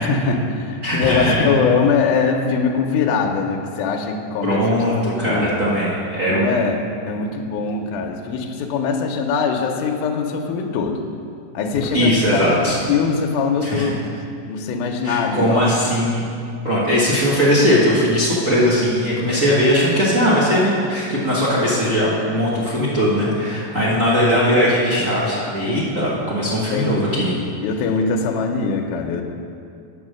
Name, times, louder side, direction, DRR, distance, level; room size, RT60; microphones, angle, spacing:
voice 1, 0.0-4.6 5.0-5.5 6.3-6.8 7.1-11.0 11.5-12.6 12.9-14.0 14.5-15.6 16.7-16.8 26.5-27.1 27.6-29.2, left 5 dB, 75° left, 2 dB, 2.1 m, -22 dB
voice 2, 0.8-1.5 4.4-6.5 11.9-12.8 13.6-13.9 15.0-16.2 16.6-27.4, equal, 55° right, -7 dB, 0.8 m, -19 dB
9.0 x 7.8 x 6.3 m, 2.4 s
omnidirectional pair, 4.0 m